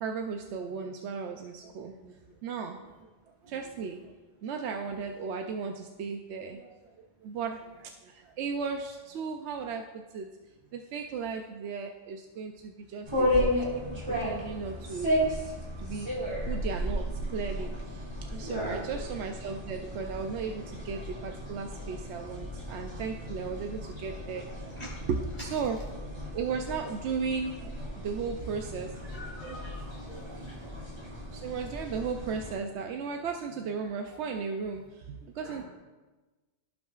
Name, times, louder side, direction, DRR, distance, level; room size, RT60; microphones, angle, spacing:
voice 1, 0.0-2.9 3.4-4.1 4.4-10.3 10.7-13.5 13.9-15.1 15.8-16.1 16.5-24.8 25.1-25.8 26.3-28.9 31.3-35.6, right 5 dB, 75° right, 4 dB, 0.9 m, -36 dB
sound 1, 13.0-32.5, equal, 25° right, 2.2 m, -34 dB
voice 2, 18.4-18.8 24.8-24.9 29.1-29.8 30.1-30.5 31.9-32.0 35.4-35.6, right 1 dB, 35° left, -5 dB, 2.9 m, -40 dB
16.0 x 6.2 x 2.4 m, 1.2 s
omnidirectional pair, 1.2 m